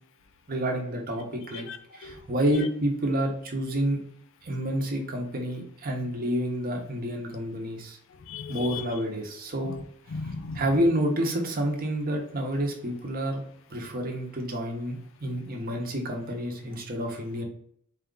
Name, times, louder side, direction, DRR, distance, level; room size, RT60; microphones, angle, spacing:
voice 1, 0.5-1.7 1.9-4.0 4.4-8.0 8.5-9.7 10.6-17.4, equal, 40° right, 1 dB, 0.8 m, -29 dB
voice 2, 1.5-2.7 6.0-6.1 8.1-9.0 9.6-10.8, left 4 dB, 65° left, 9 dB, 0.4 m, -38 dB
4.2 x 2.4 x 3.7 m, 0.65 s
head